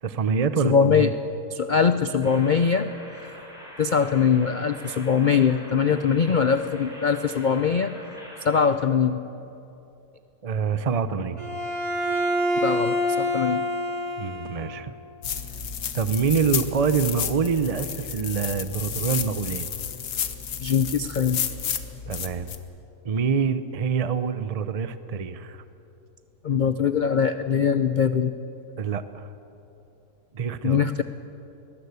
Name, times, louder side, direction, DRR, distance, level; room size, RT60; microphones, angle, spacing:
voice 1, 0.0-1.1 10.4-11.4 14.2-14.9 15.9-19.7 22.1-22.5 23.0-25.6 28.8-29.3 30.3-30.8, right 6 dB, 40° right, 11 dB, 0.5 m, -26 dB
voice 2, 0.6-1.1 1.5-2.9 3.8-7.9 8.4-9.2 12.6-13.6 20.6-21.4 26.4-28.3 30.6-31.0, left 6 dB, 60° left, 10 dB, 0.5 m, -22 dB
sound 1, 2.2-8.7, equal, ahead, 7.4 m, -44 dB
Bowed string instrument, 11.4-14.8, left 1 dB, 20° right, 1.3 m, -26 dB
sound 2, 15.2-22.6, left 8 dB, 80° left, 1.7 m, -31 dB
22.0 x 20.0 x 8.2 m, 2.9 s
omnidirectional pair, 1.7 m